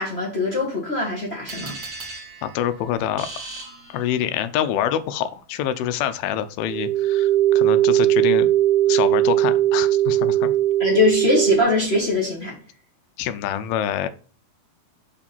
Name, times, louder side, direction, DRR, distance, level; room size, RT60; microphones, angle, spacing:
voice 1, 0.0-1.7 10.8-12.5, left 3 dB, 30° left, 1.1 m, -22 dB
sound 1, 1.5-4.5, right 3 dB, 35° right, 2.5 m, -38 dB
voice 2, 2.4-3.3 3.9-8.5 8.9-10.5 13.2-14.1, left 10 dB, 85° left, 2.5 m, -26 dB
sound 2, 6.7-11.6, right 13 dB, 80° right, 2.1 m, -19 dB
5.6 x 5.0 x 5.2 m
omnidirectional pair, 4.2 m